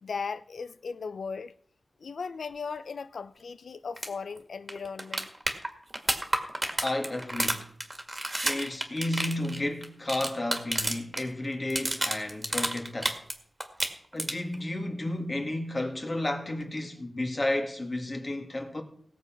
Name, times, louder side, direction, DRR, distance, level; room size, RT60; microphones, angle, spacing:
voice 1, 0.0-1.6 2.0-5.3, left 5 dB, 90° left, 0.5 m, -37 dB
sound 1, 4.0-4.1 4.4-4.5 4.7-11.2 11.5-13.3 13.6-14.6 16.6-16.7, right 1 dB, 25° right, 2.0 m, -30 dB
voice 2, 6.8-7.6 8.4-13.2 14.1-18.8, left 1 dB, 35° left, 2.0 m, -32 dB
17.5 x 7.3 x 5.9 m
wide cardioid pair, 85°, 0 cm